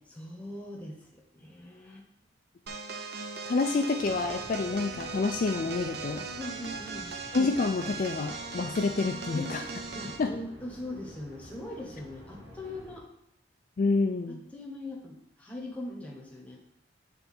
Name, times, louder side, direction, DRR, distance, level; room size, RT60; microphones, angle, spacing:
voice 1, 0.1-2.1 6.3-7.1 9.3-9.6 9.9-13.1 14.3-16.6, left 1 dB, 5° left, -1 dB, 1.0 m, -41 dB
sound 1, 2.7-10.3, right 4 dB, 55° right, 0.6 m, -39 dB
voice 2, 3.5-6.2 7.3-9.6 10.2-10.3 13.8-14.4, left 3 dB, 45° left, 5 dB, 0.3 m, -28 dB
sound 2, 4.0-13.0, left 1 dB, 80° right, 2.2 m, -50 dB
8.1 x 3.4 x 4.3 m, 0.78 s
head